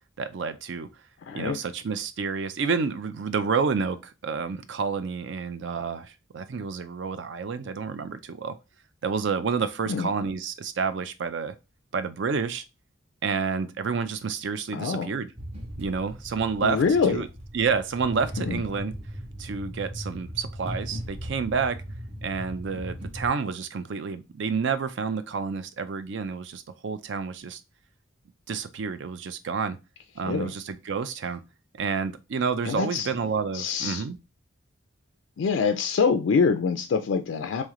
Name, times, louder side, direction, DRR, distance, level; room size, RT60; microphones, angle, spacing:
voice 1, 0.2-0.9 1.3-8.6 9.0-11.5 11.9-12.6 13.2-15.3 15.8-16.8 17.1-17.3 17.5-18.9 19.4-21.8 22.2-27.6 28.5-29.8 30.2-31.4 31.8-34.2, right 5 dB, 60° right, 0.4 m, -29 dB
voice 2, 1.3-1.6 9.9-10.1 14.7-15.1 16.6-17.3 18.4-18.6 30.2-30.5 32.7-33.1 33.5-34.0 35.4-37.6, left 5 dB, 70° left, 0.3 m, -25 dB
sound 1, 15.4-23.3, equal, 30° right, 0.7 m, -38 dB
3.2 x 3.1 x 3.6 m
head